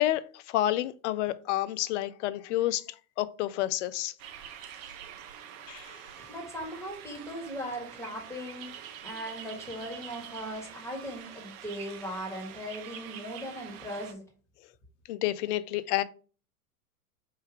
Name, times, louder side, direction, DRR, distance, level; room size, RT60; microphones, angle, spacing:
voice 1, 0.0-2.8 3.2-4.1 5.7-5.9 15.1-16.0, left 14 dB, 50° left, 0.5 m, -29 dB
sound 1, 4.2-14.1, right 9 dB, 40° right, 0.7 m, -46 dB
voice 2, 6.3-14.3, equal, 5° left, 1.6 m, -39 dB
3.7 x 2.7 x 4.8 m
hypercardioid pair, 105°, 45 cm